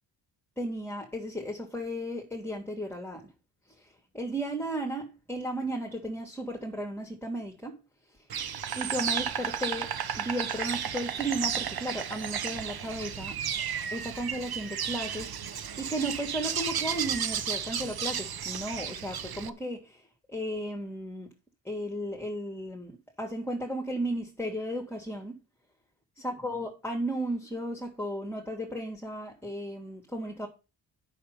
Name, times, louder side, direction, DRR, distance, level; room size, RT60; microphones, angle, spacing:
voice 1, 0.6-3.3 3.7-7.8 8.1-8.3 8.7-13.4 13.9-21.3 21.6-22.9 23.2-25.4 26.2-30.5, right 1 dB, 5° left, 2.7 m, -35 dB
Insect, 8.3-19.5, right 8 dB, 55° right, 1.1 m, -33 dB
8.6 x 6.6 x 5.4 m
cardioid pair, 60°, 44 cm